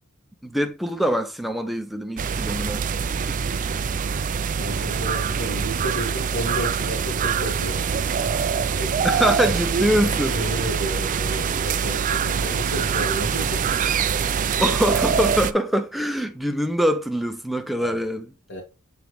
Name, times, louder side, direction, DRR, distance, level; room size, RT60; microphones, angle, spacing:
voice 1, 0.4-2.8 9.0-10.4 14.6-18.3, equal, ahead, 0.7 m, -24 dB
sound 1, 2.2-15.5, right 6 dB, 35° right, 0.4 m, -24 dB
voice 2, 4.6-8.3 8.8-9.2 10.3-13.8 17.8-18.0 18.5-18.6, equal, 60° left, 1.9 m, -32 dB
8.2 x 3.8 x 3.1 m
head